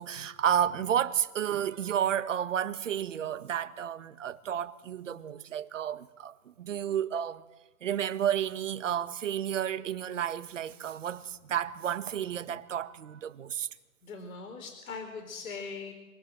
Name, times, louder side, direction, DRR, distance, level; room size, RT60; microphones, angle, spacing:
voice 1, 0.0-7.4 7.8-13.7, right 9 dB, 60° right, 1.7 m, -31 dB
voice 2, 14.0-15.9, left 4 dB, 70° left, 4.5 m, -40 dB
27.0 x 20.5 x 7.7 m
hypercardioid pair, 160°, 43 cm